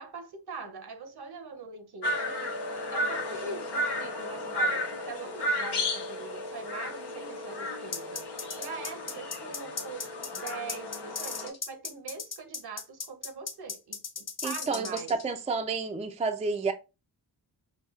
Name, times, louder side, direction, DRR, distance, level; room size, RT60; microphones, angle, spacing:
voice 1, 0.0-2.6 2.9-15.1, right 4 dB, 70° right, 0.9 m, -42 dB
sound 1, 2.0-11.5, left 1 dB, 80° left, 0.8 m, -33 dB
sound 2, 7.9-15.2, left 5 dB, 40° left, 0.7 m, -36 dB
voice 2, 14.4-16.7, right 4 dB, 15° right, 0.4 m, -30 dB
5.0 x 2.3 x 2.4 m
cardioid pair, 65°, 41 cm